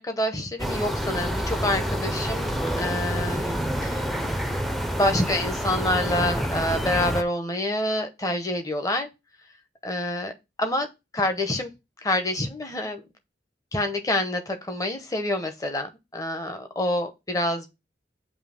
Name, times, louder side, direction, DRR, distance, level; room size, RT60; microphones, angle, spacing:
voice 1, 0.0-4.1 4.9-9.1 9.8-10.3 10.6-10.9 11.1-11.7 12.0-13.0 13.7-17.7, left 1 dB, 20° left, 0.8 m, -27 dB
sound 1, 0.6-7.2, equal, ahead, 0.5 m, -28 dB
7.3 x 2.8 x 5.0 m
head